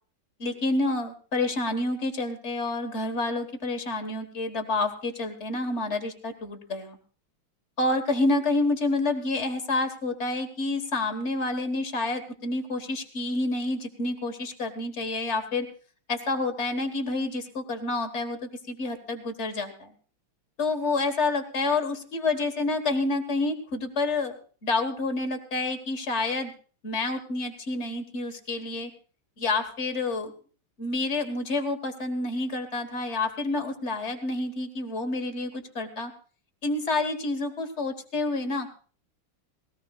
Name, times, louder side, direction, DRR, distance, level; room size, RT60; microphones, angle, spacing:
voice 1, 0.4-7.0 7.8-15.7 16.1-19.9 20.6-24.4 24.6-26.5 26.8-28.9 29.4-30.3 30.8-36.1 36.6-38.7, left 2 dB, 35° left, 7 dB, 1.5 m, -28 dB
20.5 x 17.5 x 2.4 m, 0.40 s
omnidirectional pair, 2.4 m